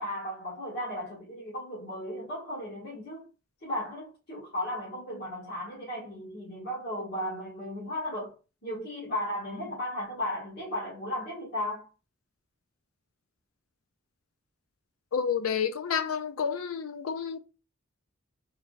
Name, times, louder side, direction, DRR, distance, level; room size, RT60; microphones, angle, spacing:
voice 1, 0.0-3.3 3.6-8.4 8.6-11.9, left 1 dB, 50° left, 1.4 m, -35 dB
voice 2, 15.1-17.4, left 7 dB, 85° left, 0.6 m, -30 dB
3.4 x 3.2 x 2.6 m
head